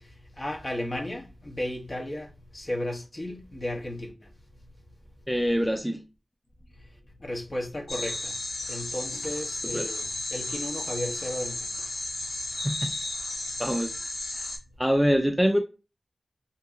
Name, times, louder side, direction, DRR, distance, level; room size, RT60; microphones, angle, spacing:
voice 1, 0.4-2.3 2.5-4.1 7.2-8.3 8.7-11.7, left 1 dB, 45° left, 1.0 m, -34 dB
voice 2, 5.3-6.0 9.6-9.9 12.6-12.9 13.6-13.9 14.3-14.4 14.8-15.6, equal, ahead, 0.4 m, -24 dB
sound 1, 7.9-14.6, left 2 dB, 80° left, 1.2 m, -33 dB
2.8 x 2.7 x 3.6 m
wide cardioid pair, 70°, 0 cm